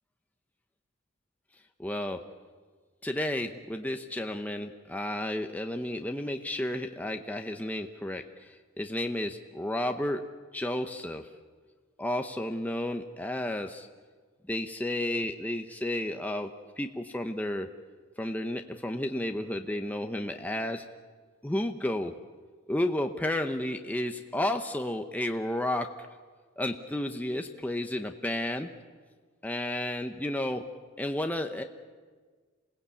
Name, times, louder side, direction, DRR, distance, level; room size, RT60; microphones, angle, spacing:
voice 1, 1.8-2.2 3.0-10.2 10.5-11.3 12.0-13.9 14.5-16.5 16.8-17.7 18.2-20.8 21.4-22.1 22.7-25.9 26.6-28.7 29.4-30.6 31.0-31.6, left 1 dB, 10° left, 5 dB, 0.8 m, -32 dB
27.0 x 18.0 x 8.4 m, 1.5 s
head